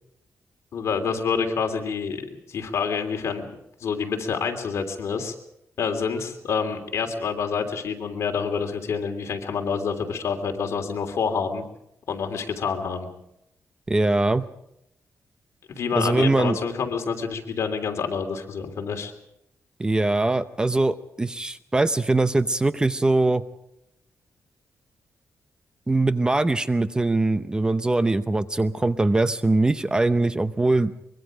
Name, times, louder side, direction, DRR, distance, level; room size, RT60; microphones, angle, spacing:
voice 1, 0.7-2.2 2.5-3.4 3.8-5.3 5.8-11.6 12.1-13.1 15.7-19.1, left 6 dB, 65° left, 4 dB, 3.2 m, -27 dB
voice 2, 13.9-14.5 16.0-16.6 19.8-23.4 25.9-30.9, right 2 dB, 15° right, 12 dB, 0.7 m, -22 dB
24.0 x 22.5 x 5.1 m, 0.81 s
wide cardioid pair, 135°, 5 cm